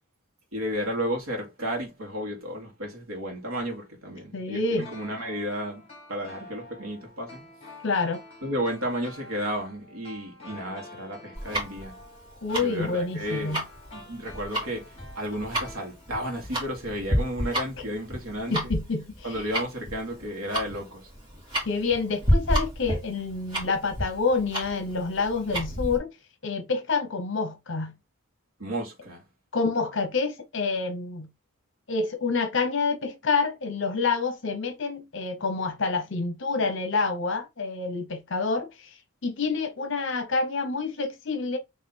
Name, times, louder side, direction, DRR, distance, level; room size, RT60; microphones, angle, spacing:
voice 1, 0.5-5.8 6.1-7.4 8.4-11.9 12.6-13.6 13.9-18.6 19.2-21.1 28.6-29.2, equal, 80° right, 1.9 m, -33 dB
voice 2, 4.3-4.9 7.8-8.2 12.4-13.6 17.8-17.9 18.5-19.4 21.6-26.1 26.4-27.9 29.5-31.3 31.9-41.6, left 4 dB, 60° left, 0.9 m, -28 dB
sound 1, 4.8-16.5 16.7-16.8, left 2 dB, 30° left, 2.1 m, -48 dB
Tick-tock, 11.3-26.0, equal, 25° right, 2.2 m, -30 dB
4.2 x 3.2 x 4.0 m
head